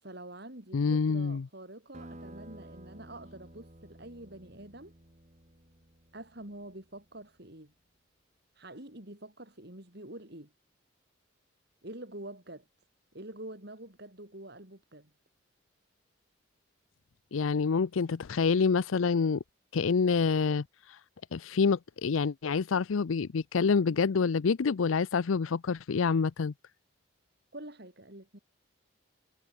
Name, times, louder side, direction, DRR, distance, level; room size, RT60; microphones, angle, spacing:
voice 1, 0.0-4.9 6.1-7.7 8.5-10.5 11.8-12.6 13.1-15.1 27.5-28.4, right 1 dB, 55° right, 4.4 m, -46 dB
voice 2, 0.7-1.5 17.3-19.4 19.7-21.0 21.3-26.5, left 5 dB, 85° left, 0.5 m, -27 dB
sound 1, 1.9-7.1, right 1 dB, 35° right, 2.7 m, -52 dB
head